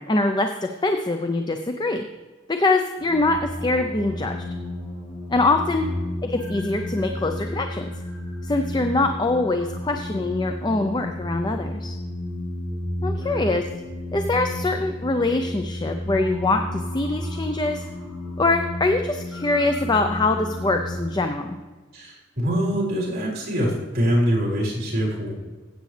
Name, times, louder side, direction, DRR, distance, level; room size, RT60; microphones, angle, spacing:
voice 1, 0.0-2.0 2.5-4.4 5.3-5.9 6.2-7.9 8.4-11.9 13.0-13.6 14.1-17.8 18.4-21.6, left 2 dB, 20° left, 5 dB, 0.5 m, -23 dB
sound 1, 3.0-21.1, left 1 dB, 5° left, 3.0 m, -32 dB
voice 2, 13.0-13.6 21.9-25.3, equal, 50° right, -5 dB, 3.9 m, -25 dB
15.5 x 8.2 x 3.3 m, 1.3 s
head